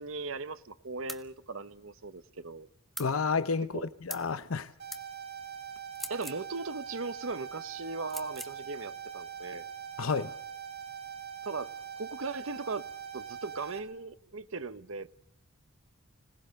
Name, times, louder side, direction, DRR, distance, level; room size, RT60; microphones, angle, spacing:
voice 1, 0.0-2.7 3.7-3.9 6.1-9.6 11.4-12.9 13.1-15.1, right 3 dB, 70° right, 1.0 m, -38 dB
sound 1, 1.1-1.3 2.9-3.1 4.1-4.3 4.9-5.0 5.9-6.4 8.1-8.5, equal, ahead, 1.2 m, -41 dB
voice 2, 3.0-4.7 10.0-10.3, left 5 dB, 75° left, 0.8 m, -30 dB
sound 2, 4.8-13.8, right 8 dB, 50° right, 5.6 m, -43 dB
26.0 x 18.5 x 6.6 m
head